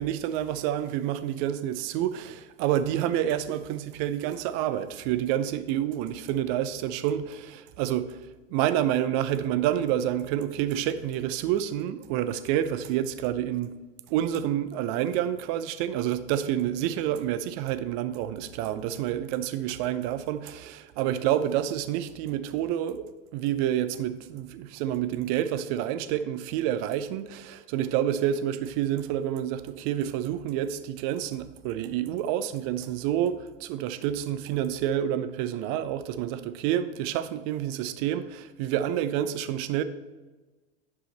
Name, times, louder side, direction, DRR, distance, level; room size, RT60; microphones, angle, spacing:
voice 1, 0.0-13.7 14.1-39.8, right 11 dB, 40° right, 0.6 m, -28 dB
10.0 x 4.9 x 4.0 m
figure-of-eight pair, 85°, 30 cm